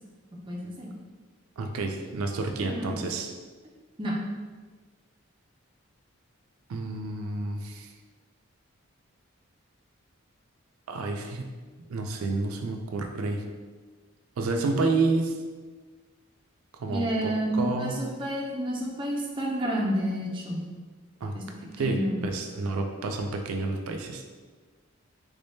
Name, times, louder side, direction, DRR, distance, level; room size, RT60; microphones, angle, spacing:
voice 1, 0.5-0.9 2.6-3.0 4.0-4.2 16.9-20.7 21.3-22.2, equal, 20° right, -3 dB, 0.5 m, -30 dB
voice 2, 1.6-3.3 6.7-7.9 10.9-11.5 11.9-13.4 14.4-15.4 16.8-18.0 21.2-21.3 21.8-22.0 22.2-24.2, right 3 dB, 80° right, 3 dB, 0.4 m, -29 dB
3.5 x 3.4 x 2.7 m, 1.4 s
head